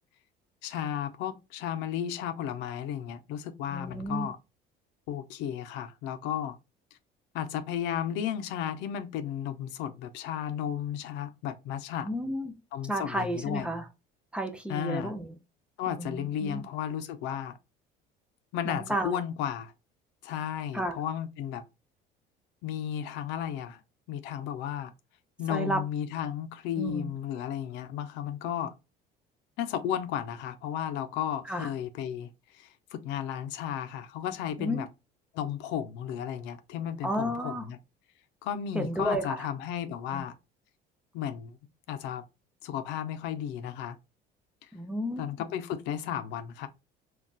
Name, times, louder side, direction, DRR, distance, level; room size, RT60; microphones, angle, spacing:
voice 1, 0.6-4.4 5.1-6.6 7.3-12.1 12.7-13.7 14.7-15.1 15.8-17.5 18.5-19.7 20.2-21.6 22.6-23.8 24.1-24.9 25.4-28.7 29.6-34.9 35.3-37.8 38.4-40.3 41.1-41.6 41.9-42.3 42.6-44.0 45.2-46.7, left 9 dB, 80° left, 0.5 m, -34 dB
voice 2, 3.7-4.3 12.0-12.5 12.8-13.9 14.3-15.4 15.9-16.6 18.6-19.2 20.7-21.0 25.5-25.8 26.8-27.1 31.5-31.7 34.6-34.8 37.0-37.6 38.7-39.5 40.1-40.2 44.7-45.5, equal, 5° right, 0.4 m, -32 dB
3.7 x 2.3 x 2.3 m
cardioid pair, 145°, 18 cm